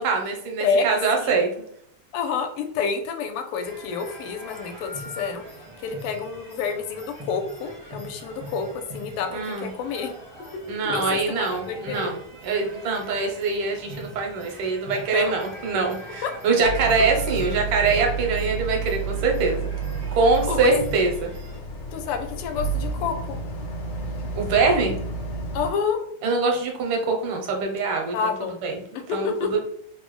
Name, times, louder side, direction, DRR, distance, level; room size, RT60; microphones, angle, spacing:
voice 1, 0.0-1.5 9.3-9.7 10.7-12.2 12.4-19.6 20.1-21.3 24.4-24.9 26.2-28.8 29.1-29.6, right 4 dB, 80° right, 2 dB, 1.6 m, -24 dB
voice 2, 0.6-1.4 2.1-5.4 5.8-10.1 10.8-12.1 15.1-15.3 16.2-16.3 20.5-20.7 21.9-23.4 25.5-26.0 28.1-28.6 28.9-29.6, left 5 dB, 85° left, 6 dB, 1.5 m, -28 dB
sound 1, 3.6-21.6, right 1 dB, 45° right, 0.3 m, -42 dB
Boat Water vehicle, 16.6-25.7, right 5 dB, 70° left, 1.3 m, -30 dB
3.8 x 2.0 x 3.0 m, 0.69 s
omnidirectional pair, 2.4 m